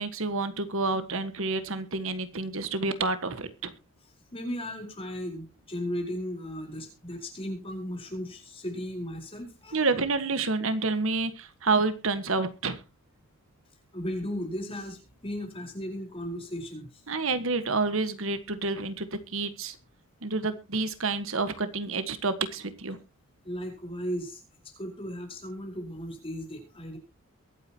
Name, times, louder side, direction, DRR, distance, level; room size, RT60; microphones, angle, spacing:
voice 1, 0.0-3.7 9.7-12.8 17.1-19.8 20.2-23.0, right 3 dB, 65° right, 11 dB, 1.5 m, -29 dB
voice 2, 4.3-9.8 13.9-17.0 23.4-27.0, equal, 25° left, 2 dB, 4.6 m, -36 dB
23.0 x 8.9 x 2.9 m, 0.29 s
head